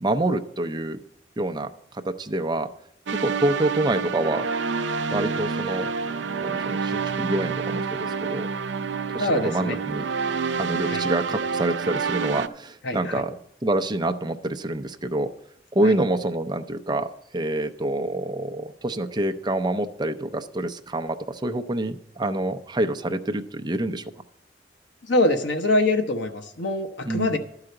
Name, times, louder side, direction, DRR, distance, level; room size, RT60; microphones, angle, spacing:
voice 1, 0.0-1.0 1.4-1.7 2.0-2.7 3.2-4.5 5.1-5.9 6.4-8.5 9.1-10.0 10.6-13.3 13.6-15.3 15.7-24.0 27.1-27.4, right 1 dB, 25° right, 7 dB, 0.5 m, -26 dB
sound 1, 3.1-12.5, right 5 dB, 80° right, 0.5 m, -28 dB
voice 2, 9.2-9.8 10.8-11.0 12.8-13.2 15.8-15.9 25.0-27.4, left 2 dB, 80° left, 5 dB, 0.9 m, -24 dB
11.5 x 4.9 x 7.7 m, 0.73 s
head